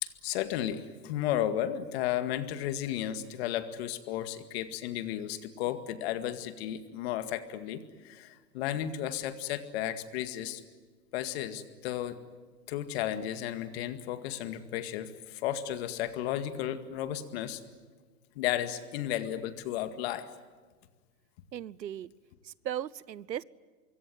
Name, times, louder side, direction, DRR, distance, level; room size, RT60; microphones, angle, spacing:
voice 1, 0.0-10.6 11.1-12.2 12.7-17.6 18.4-20.3, left 11 dB, 40° left, 10 dB, 2.0 m, -34 dB
voice 2, 21.5-22.1 22.4-23.4, right 10 dB, 90° right, 23 dB, 0.9 m, -37 dB
25.5 x 23.0 x 9.3 m, 1.4 s
hypercardioid pair, 140°, 49 cm